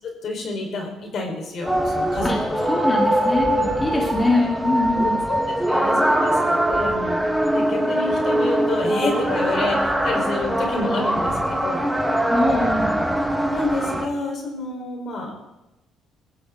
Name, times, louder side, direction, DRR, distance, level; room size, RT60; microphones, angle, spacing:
voice 1, 0.0-2.7 3.5-3.7 4.9-12.2 12.5-12.9 13.5-15.4, left 2 dB, 55° left, 1 dB, 4.8 m, -29 dB
sound 1, 1.7-14.1, right 1 dB, ahead, 1.7 m, -22 dB
voice 2, 2.7-5.2 12.3-12.7, left 2 dB, 20° left, -3 dB, 3.6 m, -22 dB
22.5 x 15.5 x 4.0 m, 0.95 s
cardioid pair, 120°, 0 cm